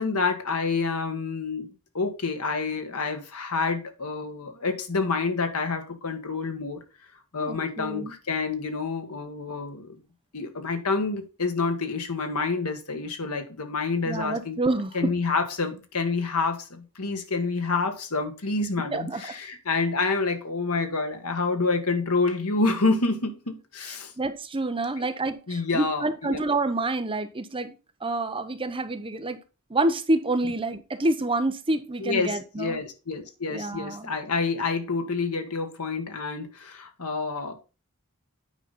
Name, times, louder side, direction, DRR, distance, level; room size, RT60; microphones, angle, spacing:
voice 1, 0.0-1.7 1.9-6.8 7.3-10.0 10.3-14.6 14.9-24.1 25.5-26.4 32.0-37.5, left 4 dB, 85° left, 1.6 m, -28 dB
voice 2, 7.4-8.1 14.1-15.1 18.9-19.2 24.2-27.7 28.0-29.4 29.7-32.8 33.5-34.1, right 2 dB, 25° right, 0.8 m, -28 dB
9.0 x 5.2 x 4.1 m
head